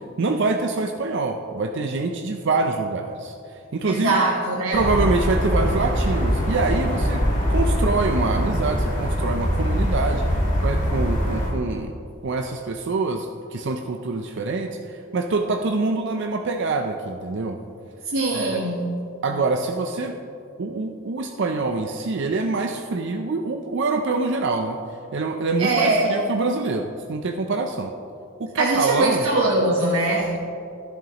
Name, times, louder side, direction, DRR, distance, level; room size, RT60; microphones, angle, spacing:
voice 1, 0.2-4.2 4.7-11.9 12.2-17.6 18.3-18.6 19.2-20.2 20.6-24.8 25.1-27.9 28.4-29.3, right 3 dB, 55° right, 4 dB, 0.5 m, -25 dB
voice 2, 3.8-4.8 18.1-18.9 25.6-26.2 28.6-30.4, right 2 dB, 75° right, -3 dB, 1.2 m, -22 dB
sound 1, 4.7-11.5, equal, 40° left, 2.5 m, -22 dB
12.5 x 11.0 x 2.9 m, 2.5 s
head